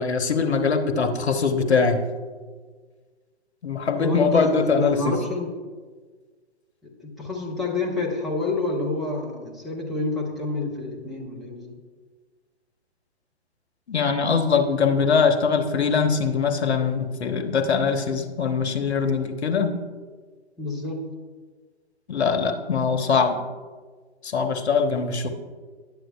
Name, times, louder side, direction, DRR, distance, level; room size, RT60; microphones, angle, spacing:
voice 1, 0.0-2.0 3.6-5.2 13.9-19.7 22.1-23.4 24.2-25.3, left 5 dB, 70° left, 6 dB, 1.1 m, -22 dB
voice 2, 4.0-5.6 7.0-11.8 20.6-21.1, left 3 dB, ahead, -4 dB, 0.5 m, -28 dB
11.0 x 7.8 x 2.4 m, 1.5 s
figure-of-eight pair, 130°, 33 cm